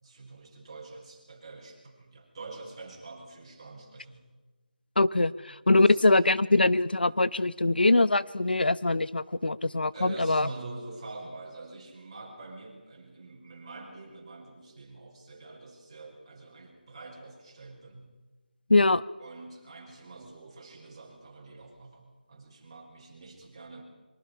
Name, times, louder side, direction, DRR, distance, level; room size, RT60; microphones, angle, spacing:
voice 1, 0.0-4.2 5.5-6.1 9.9-18.1 19.2-23.8, right 3 dB, 30° right, -1 dB, 5.7 m, -45 dB
voice 2, 5.0-10.5 18.7-19.0, left 2 dB, 85° left, 17 dB, 0.8 m, -23 dB
25.5 x 23.5 x 5.7 m, 1.2 s
figure-of-eight pair, 170°, 5 cm